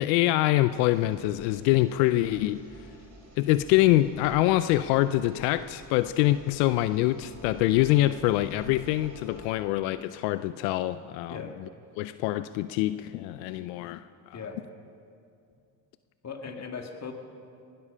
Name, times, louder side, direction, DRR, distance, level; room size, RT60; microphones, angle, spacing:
voice 1, 0.0-2.8 3.4-11.7 12.0-14.4, left 15 dB, 85° left, 14 dB, 0.5 m, -25 dB
sound 1, 0.7-9.5, right 2 dB, 35° right, 5.2 m, -50 dB
voice 2, 16.2-17.1, left 5 dB, 35° left, 4 dB, 2.2 m, -38 dB
20.0 x 12.0 x 5.5 m, 2.4 s
supercardioid pair, 70°, 47 cm